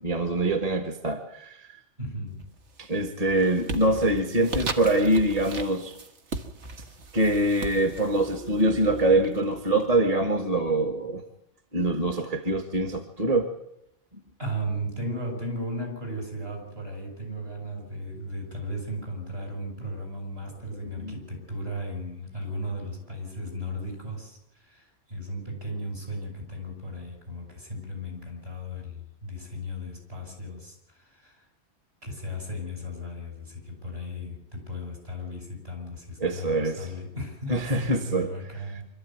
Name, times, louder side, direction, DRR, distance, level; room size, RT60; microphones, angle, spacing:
voice 1, 0.0-1.7 2.8-6.0 7.1-11.2 11.7-13.5 21.0-21.1 36.2-36.9 37.5-38.3, right 1 dB, 35° right, 6 dB, 1.4 m, -24 dB
voice 2, 2.0-2.5 14.4-31.5 32.0-38.8, equal, 60° right, 1 dB, 7.9 m, -36 dB
sound 1, 2.3-2.8 3.2-9.8, right 3 dB, 85° right, 1.8 m, -37 dB
25.5 x 13.5 x 9.4 m, 0.84 s
omnidirectional pair, 1.2 m